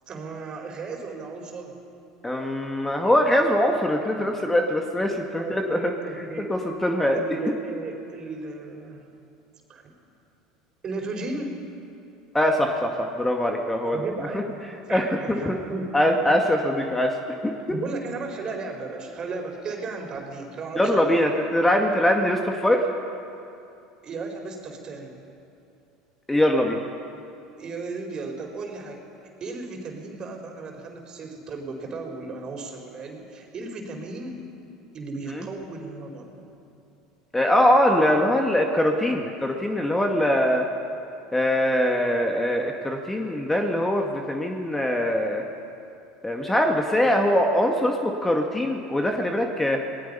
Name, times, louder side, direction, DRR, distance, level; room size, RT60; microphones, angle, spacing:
voice 1, 0.1-1.8 5.4-6.5 7.1-9.1 9.7-9.9 10.8-11.6 13.9-14.5 14.9-16.2 17.7-21.2 24.0-25.2 27.6-29.0 29.4-34.4 34.9-36.4, right 3 dB, 40° right, 2 dB, 4.6 m, -35 dB
voice 2, 2.2-5.9 6.5-7.2 7.4-7.5 12.3-14.0 14.9-15.6 15.9-17.1 17.4-17.5 20.8-22.8 26.3-26.8 35.3-35.4 37.3-40.7 41.3-45.4 46.2-49.8, left 1 dB, 10° left, 3 dB, 2.0 m, -22 dB
28.0 x 19.5 x 5.6 m, 2.7 s
hypercardioid pair, 75°, 2 cm